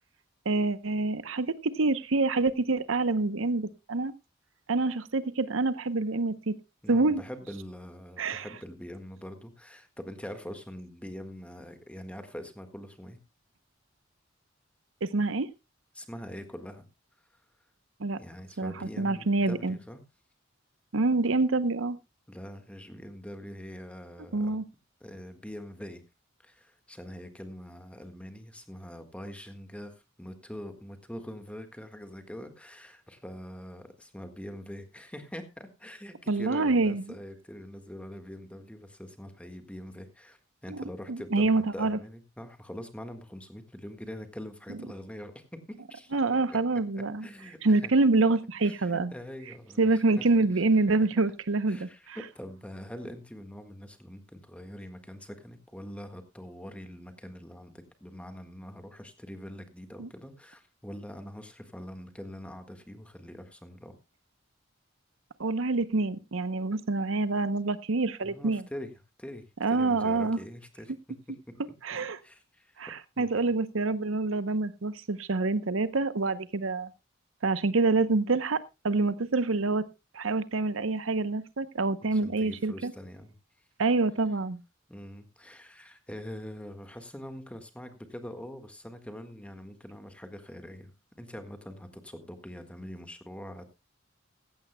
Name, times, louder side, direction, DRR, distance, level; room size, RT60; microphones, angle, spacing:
voice 1, 0.5-4.1 4.7-6.6 6.9-7.2 8.2-8.4 15.0-15.5 18.0-18.2 18.6-19.8 20.9-22.0 24.3-24.6 36.3-37.0 40.7-40.8 41.1-42.0 46.1-47.3 47.6-49.1 49.8-52.2 60.0-60.1 65.4-68.6 69.6-70.4 71.8-72.2 72.8-76.9 77.4-79.9 80.1-82.9 83.8-84.6, right 3 dB, 90° right, 15 dB, 0.8 m, -26 dB
voice 2, 6.8-13.2 15.9-16.9 18.1-20.0 22.3-24.6 25.0-26.0 26.4-46.2 46.5-46.6 46.9-47.9 48.6-50.6 51.7-64.0 68.2-68.9 69.2-71.6 72.2-73.5 82.0-83.3 84.9-93.8, equal, 5° left, 7 dB, 1.6 m, -44 dB
16.0 x 15.0 x 2.2 m, 0.25 s
head